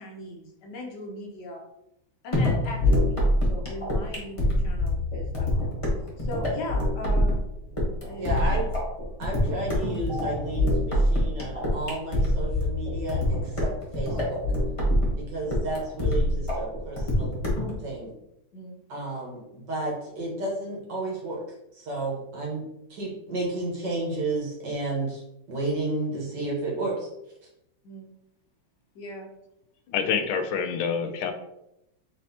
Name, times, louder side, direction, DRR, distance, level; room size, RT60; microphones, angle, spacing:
voice 1, 0.0-1.7 2.2-5.7 6.2-7.4 8.1-8.7 9.2-9.4 15.4-15.6 18.5-18.8 27.8-28.1 28.9-29.3, left 1 dB, 65° left, 1 dB, 1.3 m, -39 dB
sound 1, 2.3-17.7, left 1 dB, 20° left, 0.9 m, -25 dB
voice 2, 8.2-8.6 9.2-14.4 15.2-17.4 17.8-18.1 18.9-21.4 21.7-22.6 22.9-25.2 25.5-27.1, right 2 dB, 65° right, -3 dB, 2.0 m, -32 dB
voice 3, 29.9-31.3, left 6 dB, 90° left, 6 dB, 1.5 m, -27 dB
4.2 x 4.2 x 2.8 m, 0.84 s
omnidirectional pair, 2.2 m